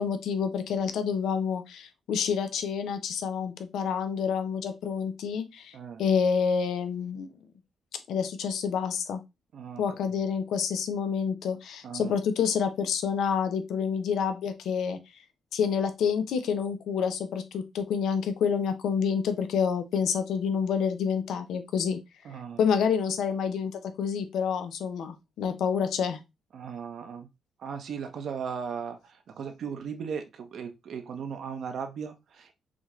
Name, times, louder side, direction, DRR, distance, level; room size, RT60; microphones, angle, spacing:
voice 1, 0.0-7.3 8.1-9.2 9.8-15.0 15.5-22.0 22.6-23.7 24.0-26.2, left 6 dB, 80° left, 0.7 m, -28 dB
voice 2, 9.5-9.8 11.8-12.1 22.2-22.6 26.5-27.3 27.6-32.5, right 6 dB, 70° right, 0.9 m, -37 dB
6.1 x 2.5 x 3.1 m
cardioid pair, 80°, 0 cm